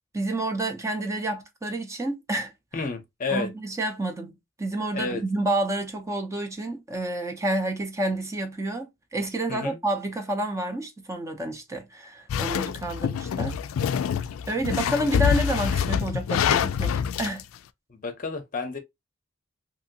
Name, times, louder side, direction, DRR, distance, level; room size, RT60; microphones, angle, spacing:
voice 1, 0.1-2.5 3.3-4.3 4.6-13.6 14.1-14.2 14.5-17.4, right 1 dB, 15° right, 0.5 m, -29 dB
voice 2, 2.7-3.5 4.9-5.2 9.5-9.8 17.9-18.8, left 4 dB, 40° left, 0.6 m, -31 dB
sound 1, 12.3-17.4, left 7 dB, 80° left, 0.3 m, -26 dB
2.8 x 2.7 x 2.6 m
head